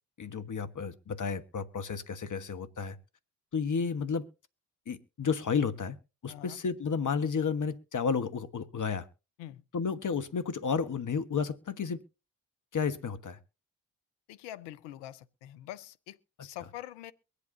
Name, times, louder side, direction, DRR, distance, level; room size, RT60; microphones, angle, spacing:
voice 1, 0.2-3.0 3.5-4.2 4.9-6.0 6.2-9.1 9.7-12.0 12.7-13.4, left 6 dB, 50° left, 1.5 m, -32 dB
voice 2, 14.3-17.1, left 13 dB, 85° left, 0.7 m, -45 dB
23.0 x 8.4 x 2.8 m
hypercardioid pair, 40°, 40 cm